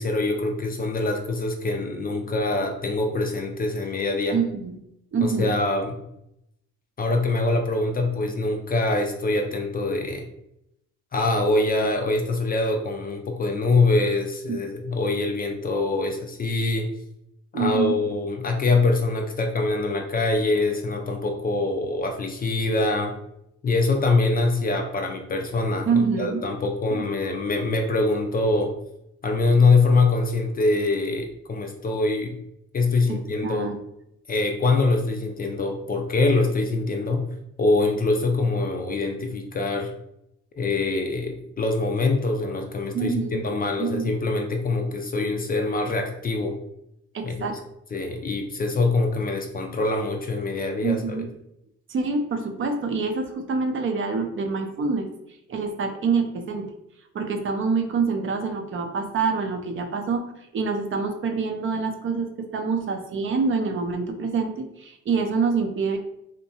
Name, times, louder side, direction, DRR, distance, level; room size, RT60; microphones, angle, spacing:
voice 1, 0.0-4.4 5.2-6.0 7.0-10.2 11.1-16.9 17.5-23.1 23.6-28.7 29.2-32.4 32.7-33.7 34.3-37.3 37.6-39.9 40.6-46.6 47.2-47.6 47.9-51.3, left 3 dB, 30° left, 3 dB, 0.4 m, -24 dB
voice 2, 4.3-4.8 5.1-5.5 14.5-14.6 17.5-18.0 25.9-26.4 26.9-27.0 33.1-33.8 42.9-43.4 43.8-44.1 47.1-47.6 50.8-51.3 51.9-55.1 55.5-56.7 57.1-66.0, right 4 dB, 45° right, 5 dB, 0.5 m, -26 dB
2.7 x 2.1 x 2.7 m, 0.80 s
cardioid pair, 90°, 30 cm